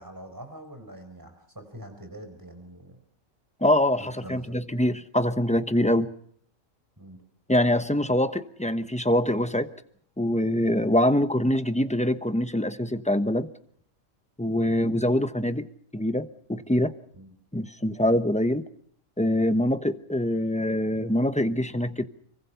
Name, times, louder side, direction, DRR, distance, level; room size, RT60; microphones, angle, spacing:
voice 1, 0.0-3.0 4.0-4.6 7.0-7.2 17.1-17.3, right 1 dB, 15° right, 7 dB, 4.7 m, -44 dB
voice 2, 3.6-6.1 7.5-9.7 10.2-13.5 14.4-15.7 15.9-16.9 17.5-18.6 19.2-22.1, left 1 dB, 5° left, 10 dB, 0.9 m, -24 dB
26.0 x 24.0 x 5.7 m, 0.63 s
omnidirectional pair, 1.4 m